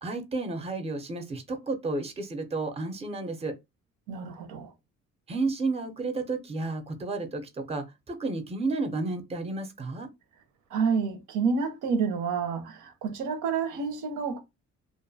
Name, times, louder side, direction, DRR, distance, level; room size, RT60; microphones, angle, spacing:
voice 1, 0.0-3.5 5.3-10.1, right 3 dB, 20° right, 0.5 m, -32 dB
voice 2, 4.1-4.7 10.7-14.4, right 5 dB, 80° right, 0.6 m, -29 dB
2.5 x 2.2 x 2.6 m
cardioid pair, 90°, 30 cm